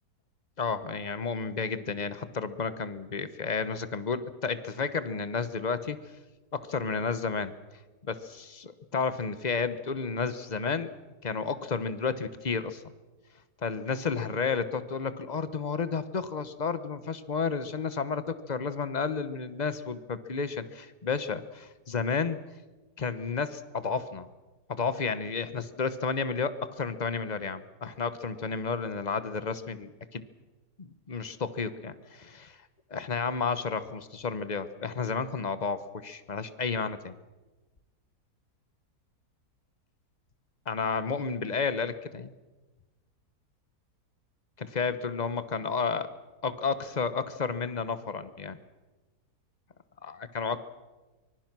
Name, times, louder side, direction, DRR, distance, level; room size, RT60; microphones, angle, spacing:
voice 1, 0.6-6.0 6.5-7.5 8.1-10.9 11.2-12.8 13.6-22.4 23.0-24.3 24.7-30.2 30.8-32.6 32.9-37.1 40.7-42.3 44.6-46.1 46.4-48.6 50.0-50.6, left 5 dB, 30° left, 13 dB, 1.0 m, -31 dB
24.5 x 21.0 x 6.1 m, 1.2 s
omnidirectional pair, 1.7 m